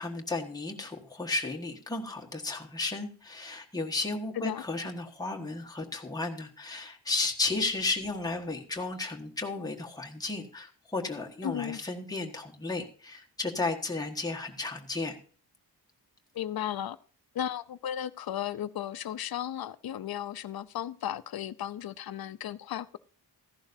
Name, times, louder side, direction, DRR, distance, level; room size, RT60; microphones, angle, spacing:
voice 1, 0.0-15.2, left 3 dB, 10° left, 1.4 m, -34 dB
voice 2, 11.4-11.8 16.3-17.0 17.3-23.0, left 10 dB, 65° left, 0.7 m, -35 dB
15.0 x 11.5 x 2.7 m
wide cardioid pair, 150°, 40 cm